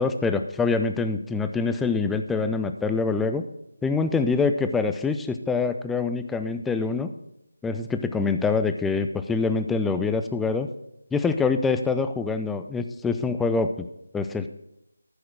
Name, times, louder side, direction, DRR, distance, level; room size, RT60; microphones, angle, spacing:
voice 1, 0.0-3.4 3.8-7.1 7.6-10.7 11.1-13.9 14.1-14.5, left 4 dB, 5° left, 8 dB, 0.4 m, -25 dB
14.0 x 6.6 x 4.6 m, 0.84 s
figure-of-eight pair, 160°, 0 cm